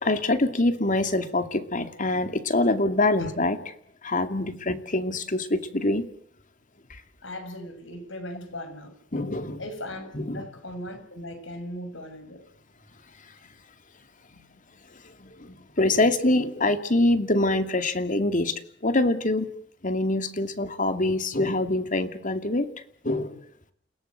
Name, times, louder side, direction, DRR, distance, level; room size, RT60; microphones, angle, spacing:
voice 1, 0.0-3.6 4.0-6.1 6.9-7.0 9.1-9.6 10.1-10.4 15.0-19.5 19.8-22.7 23.0-23.4, left 2 dB, 45° left, 9 dB, 2.4 m, -25 dB
voice 2, 7.2-9.0 9.6-10.1 10.3-12.4, left 1 dB, 85° left, 8 dB, 6.7 m, -38 dB
29.5 x 17.5 x 8.0 m, 0.62 s
head